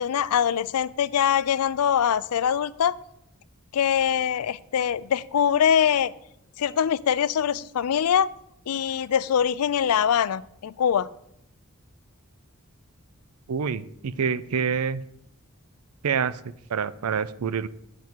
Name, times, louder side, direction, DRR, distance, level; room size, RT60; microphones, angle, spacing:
voice 1, 0.0-3.0 3.7-6.1 6.6-8.3 8.7-11.1, left 8 dB, 85° left, 19 dB, 0.4 m, -23 dB
voice 2, 13.5-15.0 16.0-16.4 16.7-17.7, right 6 dB, 80° right, 17 dB, 0.5 m, -26 dB
9.4 x 7.5 x 4.5 m, 0.76 s
head